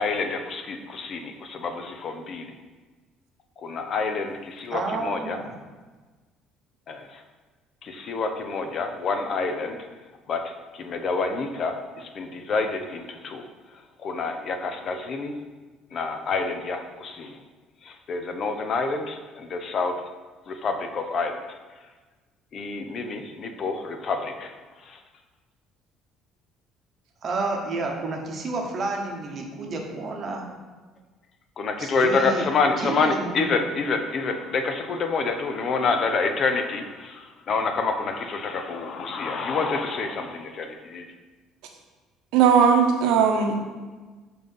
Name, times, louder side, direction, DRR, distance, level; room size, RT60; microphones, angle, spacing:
voice 1, 0.0-2.5 3.6-5.4 6.9-7.2 7.8-9.8 10.3-10.4 10.7-13.5 14.0-15.4 15.9-17.4 17.8-19.9 20.5-21.4 22.5-24.5 24.9-25.0 31.6-41.0, left 4 dB, 40° left, 6 dB, 0.6 m, -27 dB
voice 2, 4.7-5.5 27.2-30.4 31.8-32.4 32.8-33.5, right 3 dB, 35° right, 1 dB, 1.0 m, -30 dB
voice 3, 42.3-43.7, right 6 dB, 90° right, 3 dB, 0.9 m, -19 dB
5.5 x 3.9 x 5.5 m, 1.3 s
cardioid pair, 155°, 0 cm